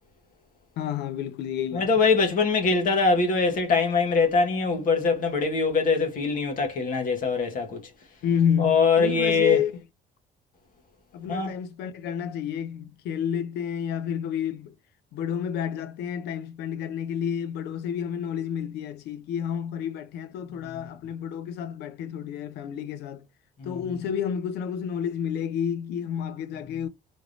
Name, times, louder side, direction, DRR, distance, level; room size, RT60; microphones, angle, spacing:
voice 1, 0.8-1.9 8.2-9.7 11.1-14.7 15.1-23.2 23.6-26.9, left 8 dB, 80° left, 0.6 m, -30 dB
voice 2, 1.7-7.8 8.6-9.6 11.3-11.5 20.6-20.8 23.6-23.8, left 4 dB, 55° left, 1.3 m, -23 dB
3.5 x 3.0 x 2.5 m
cardioid pair, 110°, 17 cm